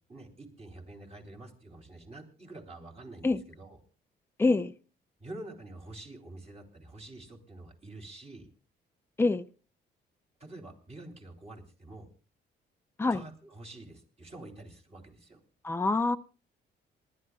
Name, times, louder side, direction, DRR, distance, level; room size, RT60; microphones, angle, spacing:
voice 1, 0.0-3.8 5.2-8.5 10.4-12.1 13.1-15.4, right 2 dB, 30° right, 3.4 m, -47 dB
voice 2, 4.4-4.7 9.2-9.4 13.0-13.2 15.6-16.2, left 3 dB, 10° left, 0.5 m, -25 dB
27.0 x 11.5 x 2.4 m
cardioid pair, 90°, 20 cm